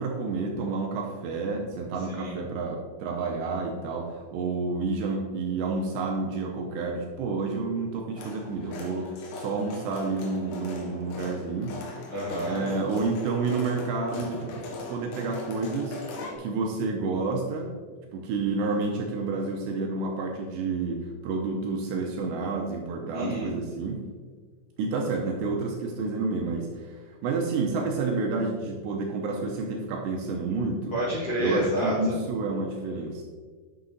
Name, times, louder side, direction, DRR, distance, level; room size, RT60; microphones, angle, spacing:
voice 1, 0.0-11.8 12.5-16.0 16.4-17.7 18.1-24.0 24.8-31.0 31.4-33.2, right 3 dB, 75° right, 0 dB, 2.7 m, -30 dB
voice 2, 2.1-2.4 12.1-12.6 23.1-23.5 30.9-32.2, equal, 55° left, -9 dB, 1.8 m, -28 dB
sound 1, 8.2-16.4, left 2 dB, 75° left, 3.6 m, -39 dB
9.7 x 6.7 x 3.9 m, 1.5 s
omnidirectional pair, 5.6 m